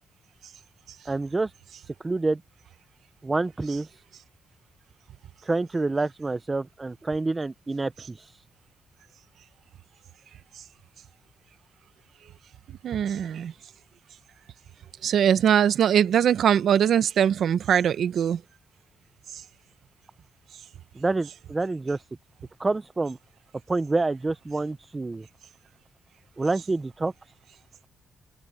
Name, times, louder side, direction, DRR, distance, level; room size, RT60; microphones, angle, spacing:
voice 1, 1.1-1.5 1.9-2.4 3.2-3.9 5.4-8.4 21.0-22.0 22.6-23.2 23.7-25.3 26.4-27.1, right 3 dB, 20° right, 0.4 m, -27 dB
voice 2, 12.7-13.5 15.0-18.4, right 9 dB, 65° right, 0.8 m, -22 dB
cardioid pair, 140°, 0 cm